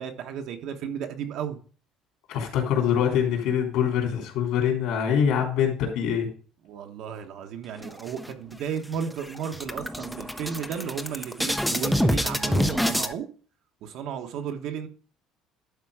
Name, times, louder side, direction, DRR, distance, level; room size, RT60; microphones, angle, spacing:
voice 1, 0.0-1.6 6.6-13.3 13.8-14.9, right 8 dB, 60° right, 1.1 m, -34 dB
voice 2, 2.3-6.3, left 8 dB, 70° left, 3.2 m, -24 dB
sound 1, 7.8-8.6 8.9-9.1 9.4-13.1, equal, ahead, 0.5 m, -27 dB
11.5 x 4.5 x 4.9 m
cardioid pair, 170°, 0 cm